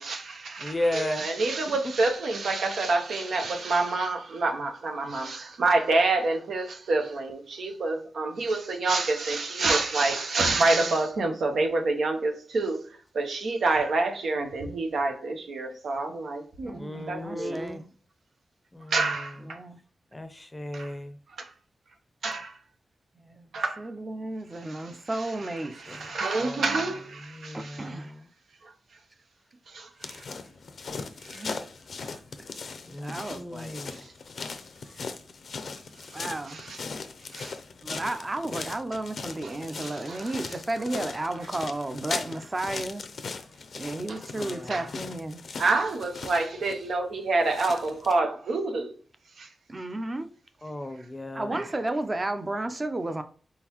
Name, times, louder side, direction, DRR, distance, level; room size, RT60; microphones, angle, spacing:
voice 1, 0.0-12.8 13.1-16.8 17.1-17.6 18.9-19.6 20.7-20.9 22.2-22.5 23.5-23.8 24.7-24.8 25.8-27.8 29.7-30.2 31.2-31.4 33.9-34.0 34.4-34.5 36.5-36.8 37.3-37.5 39.4-40.4 44.1-44.2 44.7-44.9 45.6-48.9 49.4-49.5 51.5-51.6, right 3 dB, 85° right, 0.9 m, -27 dB
voice 2, 0.6-1.3 1.7-1.8 16.7-17.8 18.7-19.3 20.1-21.2 25.9-26.8 27.3-28.3 32.8-34.0 44.3-44.8 50.6-51.6, left 1 dB, 20° left, 0.5 m, -35 dB
voice 3, 16.6-17.8 19.4-19.8 23.2-23.5 23.8-26.0 26.6-27.0 27.5-28.1 31.3-31.6 33.0-33.8 36.1-36.6 37.8-43.0 43.7-45.4 49.7-50.3 51.3-53.2, right 2 dB, 30° right, 0.6 m, -33 dB
sound 1, 30.0-48.2, left 4 dB, 70° left, 0.5 m, -39 dB
4.2 x 3.8 x 3.0 m
wide cardioid pair, 85°, 0 cm